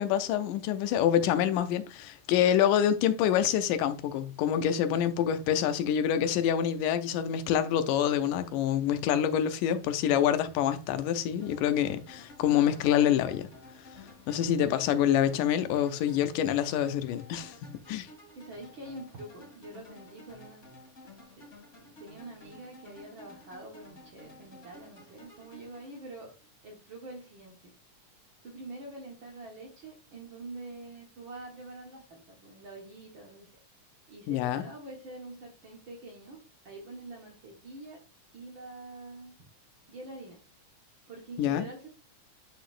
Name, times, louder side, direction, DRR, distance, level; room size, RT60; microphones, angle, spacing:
voice 1, 0.0-13.5 14.3-18.1 34.3-34.6 41.4-41.6, left 10 dB, 85° left, 2.2 m, -26 dB
voice 2, 9.6-9.9 18.3-20.7 21.0-21.5 21.8-26.3 26.6-27.7 28.4-33.5 34.1-38.0 38.3-39.3 39.9-40.4 41.1-41.9, right 2 dB, 50° right, 1.6 m, -46 dB
sound 1, 11.4-26.5, left 1 dB, 30° left, 1.7 m, -53 dB
9.9 x 4.1 x 2.5 m
omnidirectional pair, 3.7 m